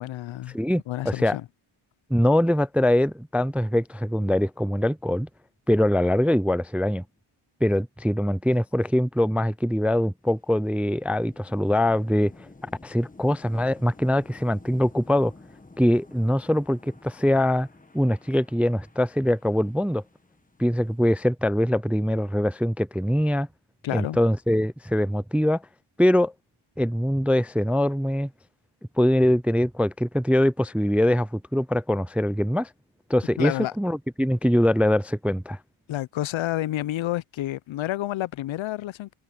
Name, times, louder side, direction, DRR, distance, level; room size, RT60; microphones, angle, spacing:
voice 1, 0.0-0.6 0.9-1.4 23.8-24.2 33.4-33.7 35.9-39.1, left 14 dB, 70° left, 0.6 m, -29 dB
voice 2, 0.5-1.4 2.1-5.3 5.7-7.0 7.6-12.5 12.8-15.3 15.8-17.7 17.9-20.0 20.6-23.5 23.9-25.6 26.0-26.3 26.8-28.3 29.0-32.7 33.1-35.6, left 1 dB, 5° right, 0.3 m, -23 dB
sound 1, 10.2-21.2, left 2 dB, 15° left, 1.6 m, -51 dB
cardioid pair, 85°, 50 cm